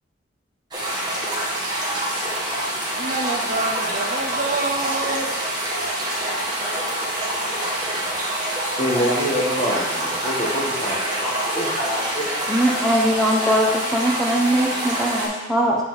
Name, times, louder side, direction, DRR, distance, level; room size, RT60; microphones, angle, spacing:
sound 1, 0.7-15.3, right 1 dB, 20° right, 1.5 m, -26 dB
voice 1, 2.9-5.4, right 3 dB, 45° right, 2 dB, 0.5 m, -27 dB
voice 2, 8.8-12.3, equal, 30° left, -4 dB, 1.4 m, -25 dB
voice 3, 12.5-15.8, equal, 5° left, -3 dB, 0.9 m, -20 dB
8.2 x 4.9 x 4.0 m, 1.1 s
head